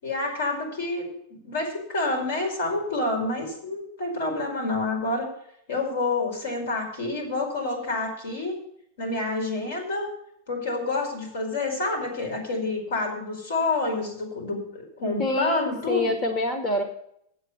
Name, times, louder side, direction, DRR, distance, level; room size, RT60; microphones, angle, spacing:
voice 1, 0.0-5.3 5.7-8.6 9.0-10.1 10.5-16.1, left 2 dB, 80° left, 2 dB, 5.0 m, -28 dB
voice 2, 15.2-16.8, left 2 dB, 25° left, 6 dB, 1.0 m, -26 dB
8.0 x 8.0 x 8.5 m, 0.73 s
supercardioid pair, 175°, 0 cm